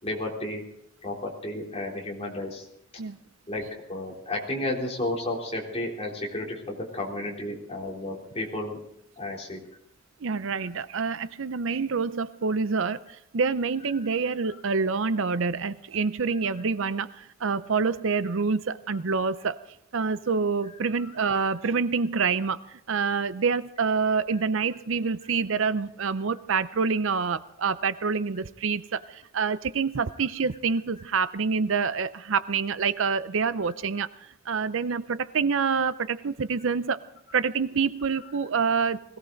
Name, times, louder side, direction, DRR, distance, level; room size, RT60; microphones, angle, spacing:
voice 1, 0.0-0.6 1.0-2.7 3.5-3.6 3.9-8.8 9.2-9.6 14.4-14.6 21.0-21.1 29.0-29.1 38.2-38.3, left 1 dB, 30° left, -2 dB, 3.4 m, -32 dB
voice 2, 10.2-13.0 13.3-19.6 19.9-22.6 22.9-34.1 34.5-37.0 37.3-39.0, right 5 dB, 60° right, 14 dB, 0.6 m, -27 dB
21.0 x 16.5 x 3.9 m, 0.75 s
head